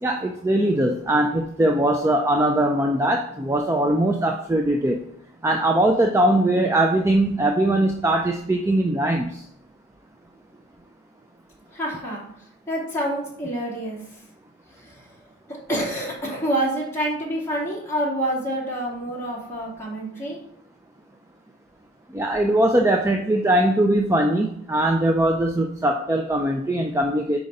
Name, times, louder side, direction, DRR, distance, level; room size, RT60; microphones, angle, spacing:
voice 1, 0.0-5.0 5.4-9.4 22.1-27.4, right 1 dB, 10° right, 3 dB, 0.3 m, -21 dB
voice 2, 11.7-12.2 12.7-14.2 14.7-15.1 15.7-20.4, right 1 dB, 10° left, -6 dB, 2.3 m, -27 dB
5.1 x 4.8 x 5.3 m, 0.70 s
head